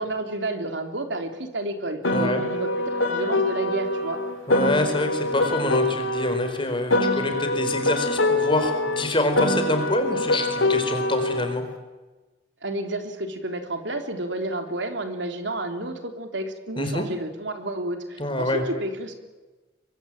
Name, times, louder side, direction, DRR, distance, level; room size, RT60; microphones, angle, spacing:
voice 1, 0.0-4.2 12.6-19.1, right 1 dB, 65° right, 5 dB, 3.6 m, -31 dB
Piano, 2.0-6.5 6.9-11.5, left 2 dB, 85° left, 4.0 m, -24 dB
voice 2, 2.1-2.4 4.5-11.6 16.8-17.0 18.2-18.6, left 1 dB, 25° left, 6 dB, 4.5 m, -26 dB
23.5 x 23.5 x 9.2 m, 1.2 s
head